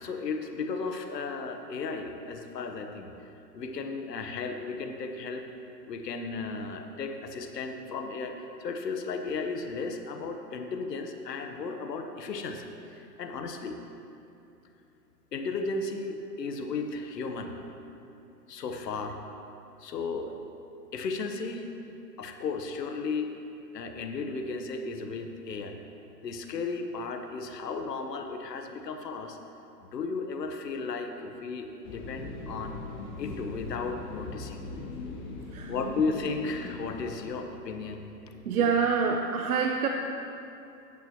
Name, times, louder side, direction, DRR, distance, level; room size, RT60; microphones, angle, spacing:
voice 1, 0.0-3.1 3.5-5.5 5.9-8.3 8.6-13.8 15.3-17.6 18.5-19.2 19.8-20.3 20.9-21.7 22.2-23.3 23.7-25.8 26.2-29.4 29.9-32.8 33.2-34.6 35.7-38.7, left 4 dB, 75° left, 5 dB, 1.3 m, -35 dB
sound 1, 31.8-37.2, left 3 dB, 30° left, 1.4 m, -40 dB
voice 2, 38.4-39.9, right 6 dB, 60° right, 3 dB, 0.8 m, -26 dB
15.0 x 9.7 x 3.1 m, 2.8 s
hypercardioid pair, 145°, 49 cm